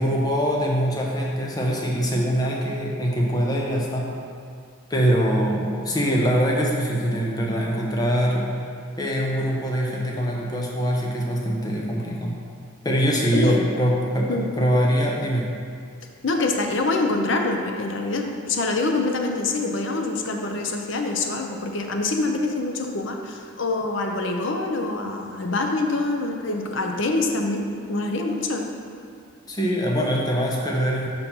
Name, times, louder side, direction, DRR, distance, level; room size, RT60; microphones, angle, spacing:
voice 1, 0.0-4.1 4.9-8.4 9.0-12.4 12.8-15.4 29.5-31.1, equal, 20° left, -2 dB, 0.7 m, -23 dB
voice 2, 13.3-13.6 14.3-14.5 16.2-28.7, left 2 dB, 60° left, 3 dB, 0.6 m, -25 dB
5.2 x 4.5 x 5.7 m, 2.2 s
head